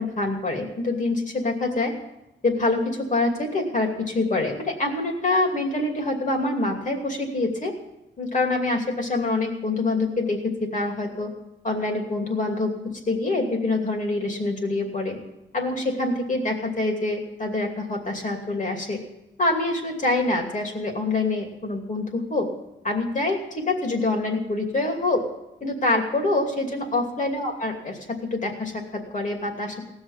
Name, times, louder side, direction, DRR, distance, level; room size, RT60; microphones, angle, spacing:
voice 1, 0.0-1.9 2.4-7.7 8.2-11.3 11.6-12.7 13.1-15.2 15.5-19.0 19.4-22.5 22.8-25.2 25.6-29.8, left 2 dB, 40° left, 2 dB, 2.7 m, -25 dB
18.0 x 6.5 x 9.8 m, 0.90 s
wide cardioid pair, 160°, 20 cm